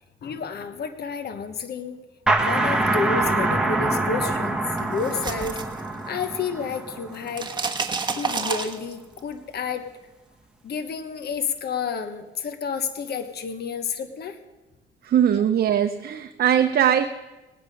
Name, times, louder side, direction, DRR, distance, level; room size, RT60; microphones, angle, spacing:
voice 1, 0.2-2.0 2.4-7.5 8.1-9.9 10.6-14.4 15.3-15.4, left 6 dB, 55° left, 9 dB, 1.0 m, -30 dB
sound 1, 2.3-7.7, right 2 dB, 5° right, 1.5 m, -25 dB
sound 2, 4.8-6.5 6.7-9.2, right 4 dB, 20° right, 1.2 m, -30 dB
voice 2, 15.0-17.0, right 9 dB, 50° right, 7 dB, 0.7 m, -20 dB
20.0 x 8.3 x 5.3 m, 1.1 s
cardioid pair, 90°, 20 cm